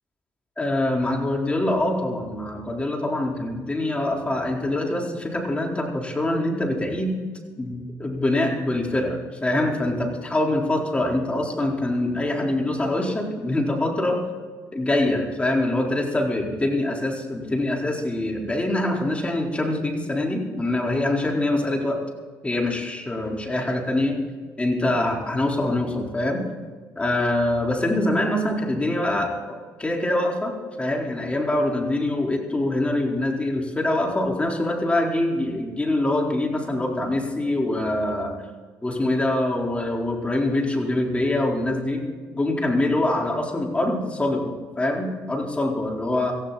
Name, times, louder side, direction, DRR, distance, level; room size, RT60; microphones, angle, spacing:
voice 1, 0.6-7.2 7.6-14.2 14.7-22.0 22.4-24.2 24.6-26.4 27.0-29.3 29.8-38.3 38.8-42.0 42.4-46.3, left 1 dB, 20° left, 0 dB, 4.2 m, -24 dB
16.5 x 15.0 x 4.2 m, 1.5 s
hypercardioid pair, 60°, 7 cm